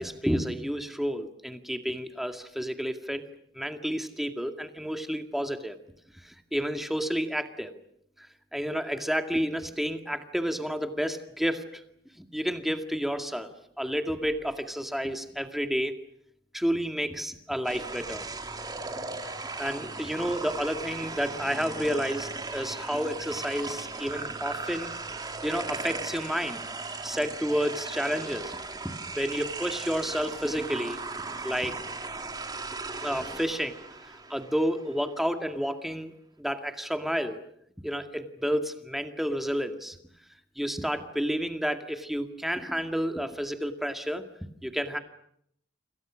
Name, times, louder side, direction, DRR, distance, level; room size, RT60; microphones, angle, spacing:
voice 1, 0.0-3.2 3.5-5.8 6.2-7.7 8.2-8.3 8.5-11.8 12.2-16.0 16.5-18.2 19.2-24.9 25.4-26.6 27.0-28.6 28.8-31.0 31.4-31.8 33.0-33.8 34.3-36.1 36.4-37.4 37.8-40.0 40.6-45.0, equal, ahead, 6 dB, 2.0 m, -30 dB
sound 1, 17.6-35.0, right 3 dB, 25° right, 2.9 m, -37 dB
29.5 x 27.0 x 6.3 m, 0.70 s
head